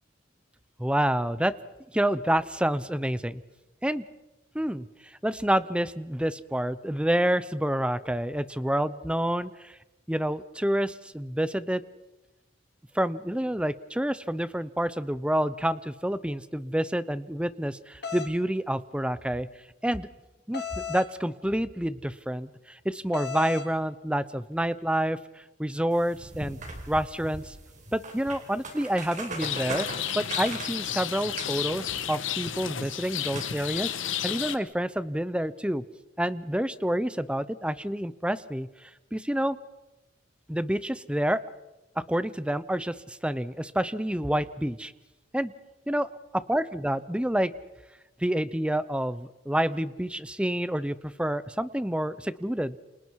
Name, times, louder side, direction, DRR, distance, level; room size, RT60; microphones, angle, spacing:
voice 1, 0.8-1.5 1.9-3.4 3.8-4.0 4.5-4.9 5.2-9.8 10.1-11.8 12.9-19.5 19.8-20.1 20.5-25.2 25.6-26.6 26.9-27.5 27.9-29.9 30.1-35.8 36.2-39.6 40.5-41.4 42.1-44.9 45.3-45.5 45.9-47.5 48.2-52.8, right 1 dB, 5° right, 16 dB, 0.7 m, -28 dB
sound 1, 18.0-18.3 20.5-21.1 23.1-23.7, left 7 dB, 60° left, 2.4 m, -34 dB
sound 2, 25.9-33.9, right 2 dB, 40° right, 4.3 m, -41 dB
Rain, 29.4-34.6, left 10 dB, 85° left, 1.3 m, -32 dB
29.5 x 27.0 x 4.7 m, 1.0 s
head